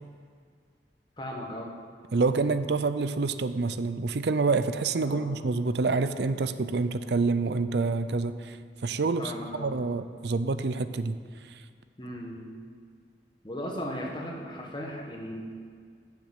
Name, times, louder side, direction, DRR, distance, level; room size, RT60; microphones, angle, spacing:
voice 1, 1.2-1.7 5.0-5.3 9.2-9.7 12.0-12.5 13.4-15.5, equal, 25° left, -1 dB, 1.7 m, -37 dB
voice 2, 2.1-11.2 11.4-11.6, right 3 dB, 70° right, 12 dB, 0.5 m, -27 dB
11.5 x 7.2 x 8.0 m, 2.1 s
head